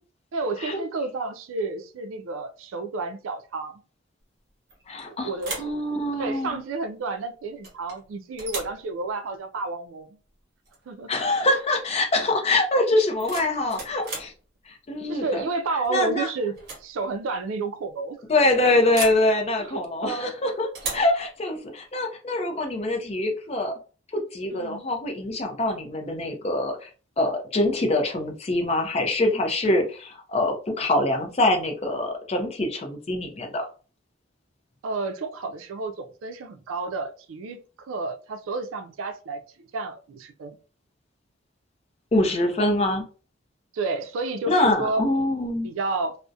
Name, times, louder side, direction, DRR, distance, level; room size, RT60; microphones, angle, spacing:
voice 1, 0.3-3.8 5.1-5.6 6.1-10.2 10.9-11.1 15.1-16.5 16.8-18.2 19.6-20.3 20.8-21.0 24.5-24.8 34.8-39.4 39.7-40.6 43.7-45.0 45.6-46.2, right 3 dB, 80° right, 8 dB, 0.4 m, -31 dB
sound 1, 4.7-5.0 5.4-5.8 7.6-8.0 8.4-8.8 10.7-10.8 11.2-11.5 13.0-14.4 15.8-16.1 16.5-16.9 17.1-17.2 18.9-19.3 20.7-21.1, right 3 dB, 50° right, 0.9 m, -35 dB
voice 2, 4.9-5.3 5.6-6.6 11.1-14.3 14.7-15.4 15.9-16.3 18.3-23.7 24.1-26.9 27.2-33.7 42.1-43.0 44.5-45.7, left 2 dB, 30° left, 4 dB, 0.4 m, -24 dB
2.3 x 2.0 x 2.6 m, 0.37 s
head